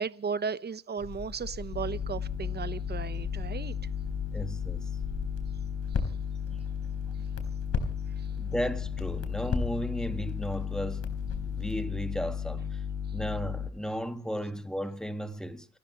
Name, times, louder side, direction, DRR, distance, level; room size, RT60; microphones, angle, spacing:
voice 1, 0.0-3.7, right 6 dB, 35° right, 1.0 m, -35 dB
Crackle, 1.0-11.8, left 4 dB, 50° left, 4.2 m, -38 dB
sound 1, 1.7-13.7, left 8 dB, 85° left, 4.4 m, -34 dB
voice 2, 4.3-4.9 8.4-12.8 13.1-15.7, equal, ahead, 1.8 m, -35 dB
29.0 x 13.5 x 3.1 m
cardioid pair, 90°, 30 cm